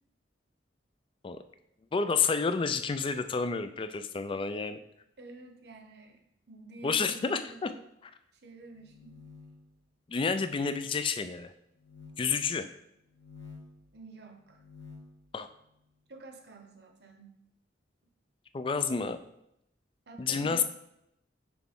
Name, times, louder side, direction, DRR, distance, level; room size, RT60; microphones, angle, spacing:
voice 1, 1.9-4.8 6.8-7.7 10.1-11.5 12.2-12.7 15.3-15.5 18.5-19.2 20.2-20.6, left 5 dB, 30° left, 10 dB, 0.3 m, -30 dB
voice 2, 5.2-7.8 8.3-9.2 12.5-12.7 13.9-14.6 16.1-17.4 20.1-20.6, right 2 dB, 60° right, 4 dB, 0.8 m, -49 dB
sound 1, 8.7-9.7 10.4-10.8 11.8-12.2 13.1-13.8 14.4-15.2, left 4 dB, 85° left, 1.0 m, -50 dB
6.1 x 4.4 x 3.6 m, 0.80 s
head